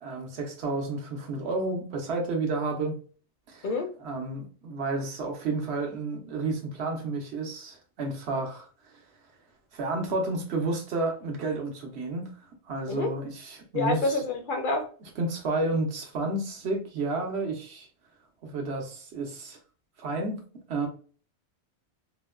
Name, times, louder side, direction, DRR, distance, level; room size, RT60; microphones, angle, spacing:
voice 1, 0.0-3.0 3.5-3.7 4.0-8.7 9.7-12.3 12.7-14.2 15.2-17.9 18.4-19.6 20.0-20.4 20.7-20.9, right 3 dB, 70° right, 1.2 m, -31 dB
voice 2, 13.7-14.9, left 3 dB, 55° left, 0.7 m, -27 dB
4.5 x 2.2 x 2.3 m
omnidirectional pair, 1.2 m